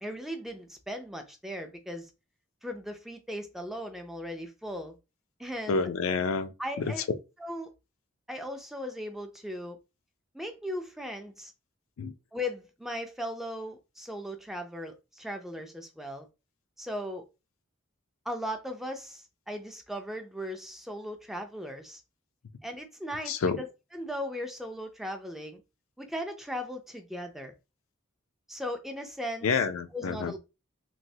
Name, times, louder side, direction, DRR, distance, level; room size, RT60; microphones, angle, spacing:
voice 1, 0.0-2.1 2.6-5.0 5.4-5.9 6.6-7.1 7.4-7.7 8.3-9.8 10.3-11.5 12.3-16.3 16.8-17.3 18.3-22.0 22.6-25.6 26.0-27.5 28.5-29.5 29.9-30.4, equal, ahead, 0.3 m, -37 dB
voice 2, 5.7-6.5 12.0-12.1 23.3-23.6 29.4-30.3, left 4 dB, 80° left, 0.4 m, -28 dB
3.1 x 2.8 x 2.7 m
head